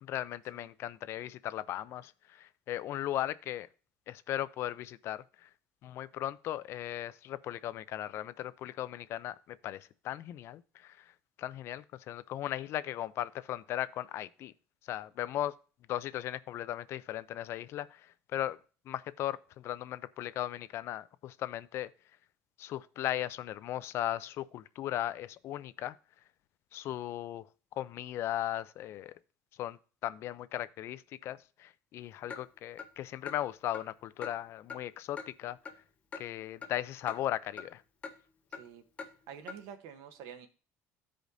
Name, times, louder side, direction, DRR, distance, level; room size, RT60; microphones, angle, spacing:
voice 1, 0.0-3.7 4.1-5.5 5.8-11.1 11.4-14.5 14.8-15.5 15.9-18.6 18.9-21.9 22.6-26.0 26.7-27.5 27.7-29.1 29.6-35.6 36.2-37.8, left 13 dB, 50° left, 0.3 m, -37 dB
Clock, 32.3-32.4 32.8-32.9 33.3-33.4 33.7-33.9 34.2-34.3 34.7-34.8 35.2-35.3 35.7-35.8 36.1-36.3 36.6-36.7 37.1-37.2 37.6-37.7 38.0-38.2 38.5-38.6 39.0-39.1 39.5-39.6, left 5 dB, 20° left, 0.7 m, -43 dB
voice 2, 38.5-38.8 39.3-40.5, right 8 dB, 80° right, 1.0 m, -48 dB
15.0 x 5.0 x 2.6 m
cardioid pair, 170°, 6 cm